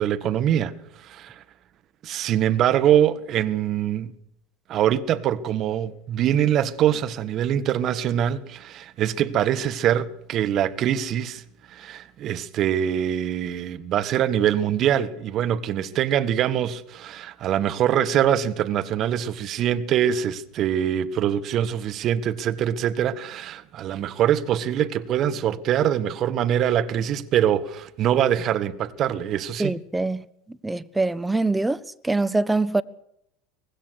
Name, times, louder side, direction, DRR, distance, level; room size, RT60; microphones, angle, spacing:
voice 1, 0.0-1.4 2.0-4.1 4.7-11.4 11.7-29.7, right 10 dB, 45° right, 1.6 m, -23 dB
voice 2, 29.6-30.2 30.6-32.8, right 2 dB, 10° right, 1.1 m, -24 dB
24.0 x 19.5 x 6.4 m
figure-of-eight pair, 75°, 0 cm